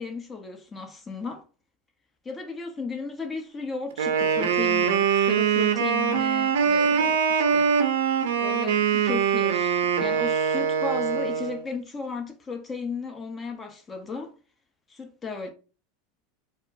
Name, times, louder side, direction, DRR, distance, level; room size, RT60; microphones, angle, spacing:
voice 1, 0.0-1.4 2.2-7.7 8.4-14.3 14.9-15.5, left 4 dB, 20° left, 0.8 m, -35 dB
Wind instrument woodwind instrument, 3.9-11.6, right 7 dB, 80° right, 0.6 m, -23 dB
4.2 x 2.0 x 2.6 m
hypercardioid pair, 105°, 0 cm